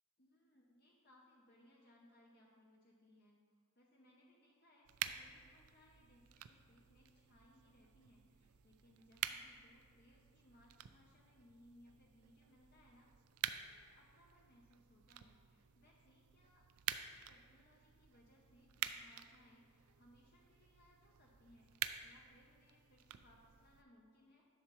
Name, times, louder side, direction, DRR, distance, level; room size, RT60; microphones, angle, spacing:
voice 1, 0.2-13.1 13.5-16.6 17.0-24.4, left 1 dB, 45° left, -2 dB, 0.7 m, -68 dB
sound 1, 4.9-23.8, right 11 dB, 75° right, 0.4 m, -49 dB
10.5 x 6.5 x 3.0 m, 2.2 s
head